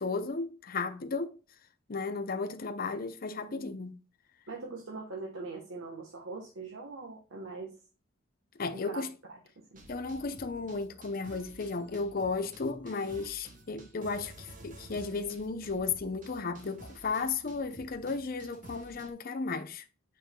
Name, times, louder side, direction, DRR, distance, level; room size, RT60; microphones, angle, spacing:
voice 1, 0.0-1.3 1.9-4.0 8.6-9.1 9.9-19.8, left 4 dB, 45° left, 0.6 m, -34 dB
voice 2, 3.5-3.9 4.5-7.7 8.7-9.8, right 3 dB, 85° right, 1.3 m, -42 dB
sound 1, 9.7-19.1, right 1 dB, 40° right, 1.3 m, -51 dB
7.3 x 5.6 x 2.3 m
head